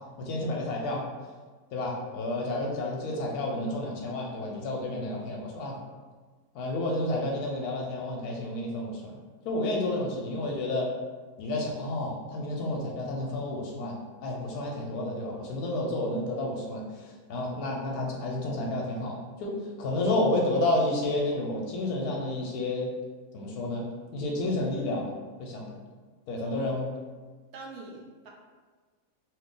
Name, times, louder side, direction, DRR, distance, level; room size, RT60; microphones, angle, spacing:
voice 1, 0.2-1.0 1.7-5.8 6.5-9.2 9.4-10.9 11.4-14.0 14.2-22.9 23.3-23.9 24.1-25.1 25.4-25.8 26.3-26.8, left 1 dB, 90° left, -2 dB, 1.1 m, -30 dB
voice 2, 27.5-28.3, right 3 dB, 75° right, -1 dB, 1.1 m, -44 dB
2.9 x 2.7 x 3.7 m, 1.4 s
omnidirectional pair, 1.6 m